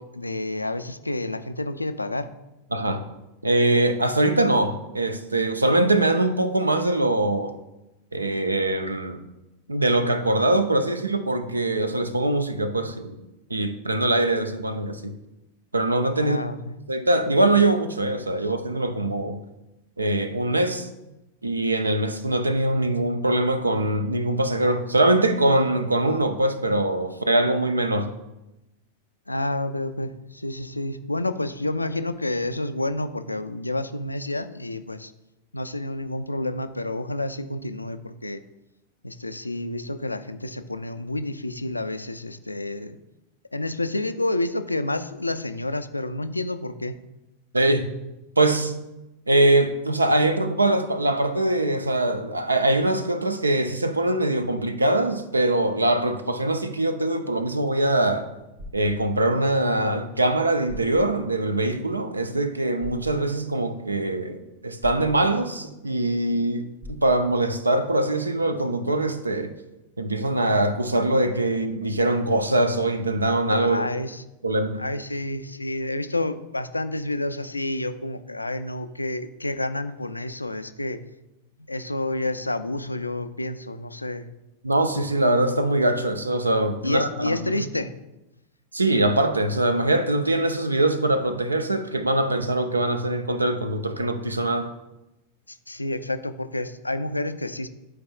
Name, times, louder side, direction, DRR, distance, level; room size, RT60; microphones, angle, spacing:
voice 1, 0.0-2.3 8.3-8.4 16.2-16.8 18.4-18.5 29.3-35.1 35.5-38.4 39.0-43.0 43.5-46.9 73.6-74.2 74.8-81.0 81.7-84.3 86.8-87.9 95.5-97.7, left 2 dB, 85° left, 11 dB, 0.3 m, -29 dB
voice 2, 2.7-3.0 3.4-7.5 8.1-9.2 9.7-13.2 13.5-15.1 15.7-16.4 16.9-19.4 20.0-20.9 21.4-28.1 47.5-47.9 48.4-48.7 49.3-58.3 58.7-69.5 70.0-73.9 74.4-74.8 84.6-87.7 88.7-94.7, right 1 dB, 80° right, 10 dB, 0.5 m, -23 dB
sound 1, 58.6-59.0 60.3-60.4 60.7-61.1 62.8-63.1 64.8-65.2 66.8-67.2, left 1 dB, 60° right, 1.3 m, -40 dB
11.0 x 4.7 x 2.3 m, 0.96 s
figure-of-eight pair, 90°, 0 cm